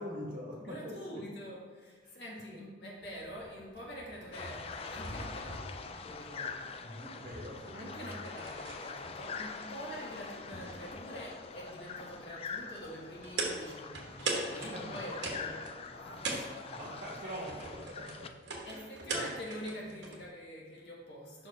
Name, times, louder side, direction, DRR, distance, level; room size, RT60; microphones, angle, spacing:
voice 1, 0.0-1.2 2.0-2.2 6.8-8.4 14.5-15.0 16.7-18.4 18.6-19.2, equal, 45° right, -3 dB, 1.7 m, -44 dB
voice 2, 0.6-6.8 7.7-16.9 17.7-17.8 18.7-21.5, equal, 60° left, -4 dB, 1.8 m, -46 dB
sound 1, 3.0-20.3, right 3 dB, 65° right, 1.3 m, -43 dB
sound 2, 4.3-18.3, left 5 dB, 30° left, 0.3 m, -44 dB
5.9 x 5.0 x 4.3 m, 1.5 s
head